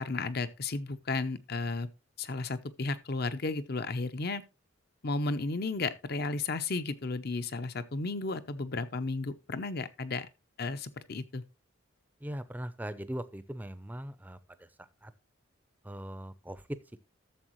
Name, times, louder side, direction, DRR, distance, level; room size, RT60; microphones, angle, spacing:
voice 1, 0.0-1.9 2.2-4.4 5.0-10.3 10.6-11.4, left 3 dB, 50° left, 0.7 m, -33 dB
voice 2, 12.2-15.1 15.8-16.6, right 1 dB, 10° right, 0.5 m, -41 dB
12.5 x 7.1 x 3.1 m
head